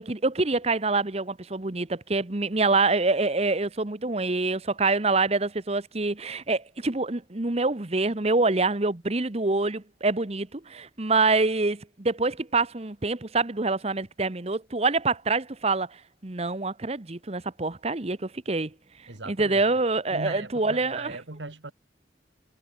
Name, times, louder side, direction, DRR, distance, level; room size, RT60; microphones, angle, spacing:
voice 1, 0.0-15.9 16.2-18.7 19.3-21.2, right 3 dB, 35° right, 1.1 m, -26 dB
voice 2, 19.1-19.6 20.1-21.7, right 2 dB, 80° right, 2.0 m, -38 dB
head